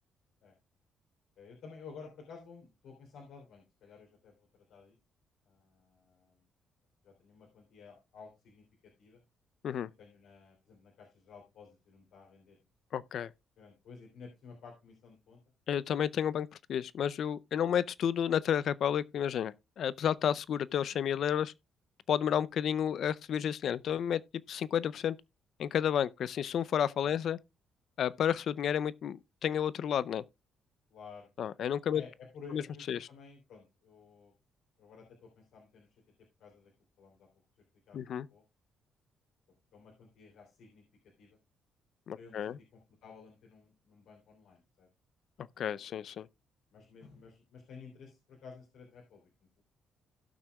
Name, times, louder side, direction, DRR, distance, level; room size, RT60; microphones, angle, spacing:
voice 1, 1.4-4.9 5.4-6.4 7.0-8.6 9.0-9.2 10.0-12.6 13.6-15.4 17.6-17.7 27.0-27.2 30.9-31.5 31.9-34.3 34.8-35.9 36.4-36.7 37.0-37.3 37.9-38.0 38.3-38.4 39.7-40.8 41.2-41.4 42.1-44.9 45.5-45.7 46.7-49.3, left 5 dB, 80° left, 3.1 m, -53 dB
voice 2, 12.9-13.3 15.7-21.5 22.1-24.2 24.5-25.2 25.6-27.4 28.0-30.2 31.4-32.0 32.5-32.6 32.9-33.1 37.9-38.3 42.1-42.6 45.6-46.3, left 9 dB, 65° left, 0.5 m, -31 dB
17.0 x 6.0 x 2.3 m
cardioid pair, 90°, 0 cm